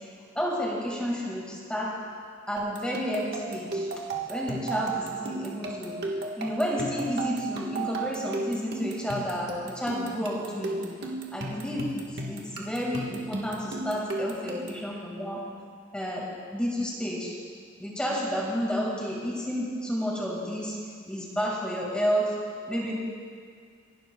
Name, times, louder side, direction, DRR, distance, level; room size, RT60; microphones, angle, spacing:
voice 1, 0.4-1.9 2.5-3.9 4.3-6.0 6.4-10.8 11.3-15.4 15.9-17.4 17.8-20.8 21.1-22.4 22.7-22.9, equal, 5° left, -4 dB, 2.0 m, -31 dB
sound 1, 2.6-14.9, right 3 dB, 55° right, 1.5 m, -35 dB
27.0 x 12.0 x 2.3 m, 2.1 s
head